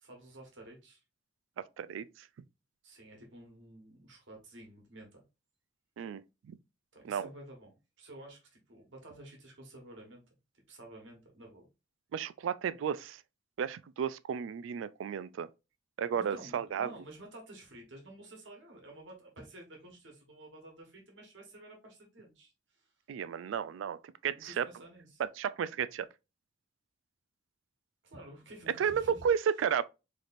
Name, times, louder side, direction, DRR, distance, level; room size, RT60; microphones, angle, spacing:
voice 1, 0.0-1.0 2.8-5.2 6.9-10.2 10.7-11.6 16.1-22.9 24.3-25.2 28.0-29.2, right 1 dB, 70° right, 1.2 m, -51 dB
voice 2, 1.6-2.3 6.0-6.6 7.0-7.3 12.1-13.2 13.6-15.5 16.0-16.9 23.1-24.7 25.2-26.1 28.8-29.8, right 7 dB, 90° right, 0.3 m, -33 dB
4.2 x 3.2 x 2.5 m
head